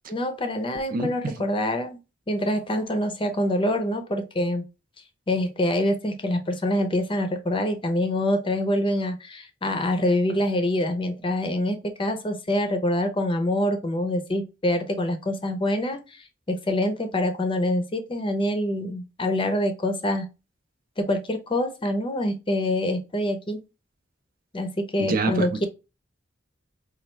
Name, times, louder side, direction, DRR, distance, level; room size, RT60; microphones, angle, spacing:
voice 1, 0.1-2.0 2.3-4.6 5.3-20.3 21.0-23.6 24.5-25.6, left 1 dB, 30° left, 0.6 m, -25 dB
voice 2, 0.9-1.3 25.0-25.6, right 3 dB, 50° right, 0.6 m, -26 dB
4.3 x 2.3 x 3.1 m
head